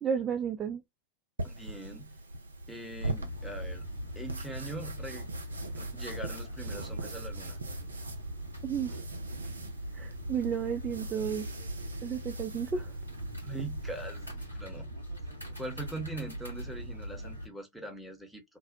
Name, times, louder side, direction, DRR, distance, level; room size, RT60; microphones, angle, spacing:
voice 1, 0.0-0.8 8.6-9.0 9.9-11.5 12.0-13.0, right 7 dB, 25° right, 0.3 m, -32 dB
voice 2, 1.4-2.1 2.7-3.9 4.2-5.3 5.8-7.6 13.4-14.9 15.6-18.4, right 2 dB, ahead, 0.8 m, -42 dB
sound 1, 1.4-14.3, right 2 dB, 75° right, 0.5 m, -42 dB
sound 2, 3.0-17.5, equal, 85° left, 1.0 m, -41 dB
2.6 x 2.0 x 2.5 m
figure-of-eight pair, 90°, 0 cm